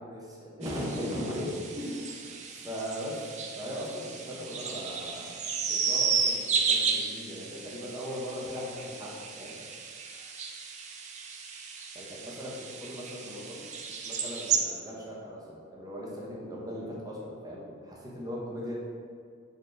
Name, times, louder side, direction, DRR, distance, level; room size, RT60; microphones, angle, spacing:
voice 1, 0.0-2.3 2.6-3.2 3.5-6.5 6.8-9.6 11.9-13.7 14.0-18.7, equal, 20° right, -5 dB, 0.7 m, -38 dB
sound 1, 0.6-14.6, right 5 dB, 35° right, 0.3 m, -33 dB
4.0 x 3.2 x 2.6 m, 2.1 s
head